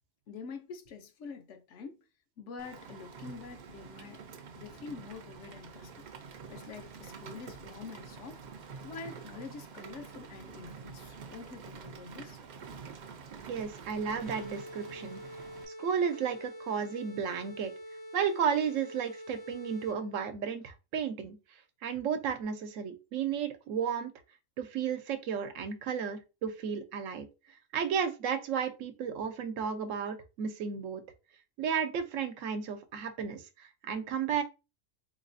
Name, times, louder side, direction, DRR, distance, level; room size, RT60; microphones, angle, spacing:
voice 1, 0.3-2.0 2.4-4.2 4.6-12.4, left 5 dB, 70° left, 1.0 m, -46 dB
Rain, 2.6-15.6, right 5 dB, 65° right, 0.4 m, -47 dB
voice 2, 13.5-15.2 15.8-17.7 18.1-21.4 21.8-24.1 24.6-27.3 27.7-31.0 31.6-34.4, right 7 dB, 85° right, 1.0 m, -33 dB
sound 1, 14.2-20.2, equal, 45° left, 0.5 m, -46 dB
3.9 x 2.9 x 2.5 m
omnidirectional pair, 1.3 m